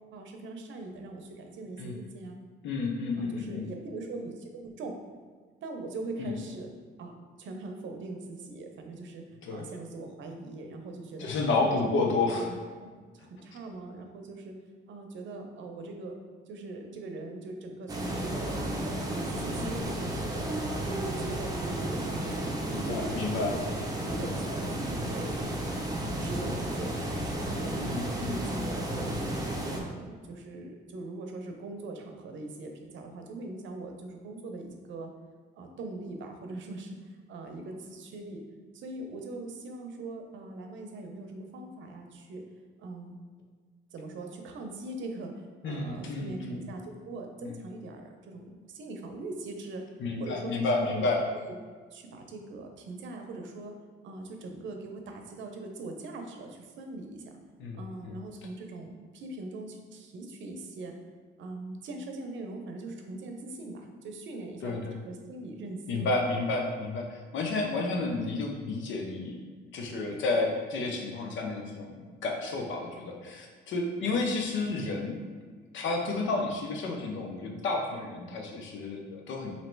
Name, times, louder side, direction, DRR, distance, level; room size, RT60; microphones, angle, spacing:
voice 1, 0.1-2.4 3.2-5.0 5.6-6.7 7.0-11.3 11.6-14.6 14.9-16.2 16.5-20.5 20.9-23.1 23.4-23.6 24.0-25.5 25.9-27.8 28.0-29.3 29.7-35.1 35.5-38.4 38.7-42.4 42.8-43.2 43.9-49.8 50.2-51.1 51.4-51.6 51.9-53.8 54.0-57.4 57.7-61.0 61.4-66.1, right 2 dB, 70° right, 4 dB, 0.6 m, -41 dB
voice 2, 2.6-3.6 6.2-6.3 9.4-9.6 11.2-12.5 19.6-19.8 22.7-23.6 27.8-28.4 45.6-46.6 47.4-47.6 50.0-51.2 57.6-57.8 64.6-64.9 65.9-69.4 69.7-75.2 75.7-79.5, left 3 dB, 75° left, 1 dB, 0.7 m, -31 dB
sound 1, 17.9-29.8, right 1 dB, 20° right, 0.7 m, -33 dB
3.0 x 2.8 x 4.5 m, 1.5 s
cardioid pair, 90°, 20 cm